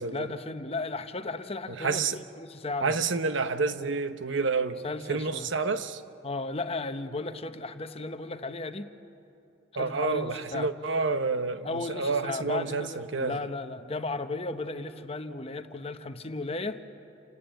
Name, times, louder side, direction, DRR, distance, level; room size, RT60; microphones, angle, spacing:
voice 1, 0.1-3.0 4.8-5.5 6.2-8.9 9.7-10.7 11.6-16.8, left 3 dB, 30° left, 1.0 m, -35 dB
voice 2, 1.7-2.2 2.8-6.0 9.8-13.4, right 4 dB, 70° right, 0.9 m, -29 dB
29.0 x 18.5 x 9.0 m
head